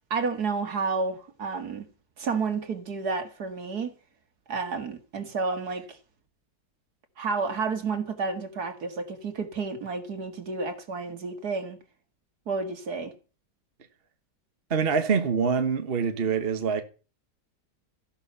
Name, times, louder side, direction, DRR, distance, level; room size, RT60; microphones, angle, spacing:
voice 1, 0.1-1.9 2.2-3.9 4.5-6.0 7.2-11.8 12.5-13.1, right 4 dB, 65° right, 2.4 m, -30 dB
voice 2, 14.7-16.8, right 6 dB, 35° right, 1.3 m, -25 dB
14.5 x 11.0 x 5.6 m
omnidirectional pair, 1.8 m